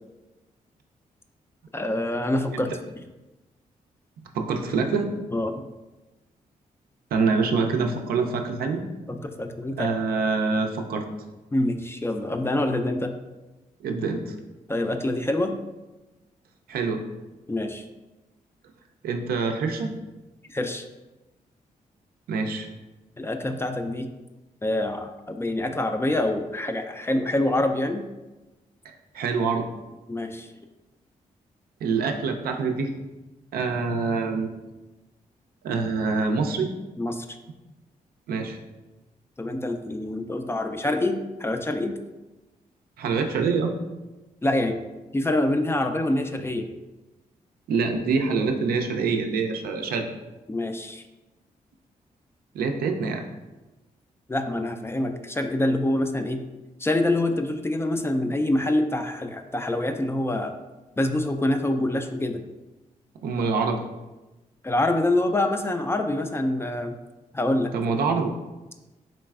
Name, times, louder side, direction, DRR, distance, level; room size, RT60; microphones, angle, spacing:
voice 1, 1.7-2.7 5.3-5.7 9.1-9.9 11.5-13.2 14.7-15.6 17.5-17.8 20.5-20.8 23.2-24.1 24.6-28.0 30.1-30.5 37.0-37.3 39.4-42.0 44.4-44.8 45.1-46.7 50.5-51.0 54.3-56.4 56.8-60.5 61.0-62.4 64.6-67.0 67.3-67.8, left 1 dB, 15° left, 6 dB, 0.3 m, -26 dB
voice 2, 4.3-5.1 7.1-8.8 9.8-11.1 13.8-14.3 16.7-17.1 19.0-19.9 22.3-22.7 28.8-29.7 31.8-32.9 33.5-34.5 35.6-36.7 38.3-38.6 43.0-43.8 47.7-50.1 52.5-53.2 63.2-63.8 67.7-68.3, right 4 dB, 80° right, 4 dB, 0.4 m, -25 dB
4.0 x 3.1 x 2.3 m, 1.1 s
supercardioid pair, 55°, 15 cm